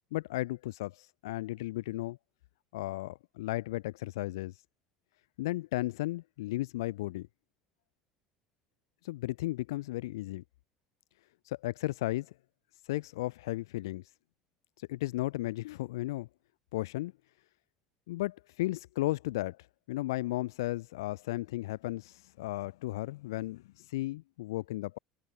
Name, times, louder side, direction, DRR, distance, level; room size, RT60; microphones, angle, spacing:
voice 1, 0.1-2.2 2.7-4.6 5.4-7.3 9.0-10.4 11.4-12.3 12.8-14.0 14.8-16.3 16.7-17.1 18.1-19.6 19.9-25.0, left 18 dB, 65° left, 0.7 m, -35 dB
figure-of-eight pair, 65°, 2 cm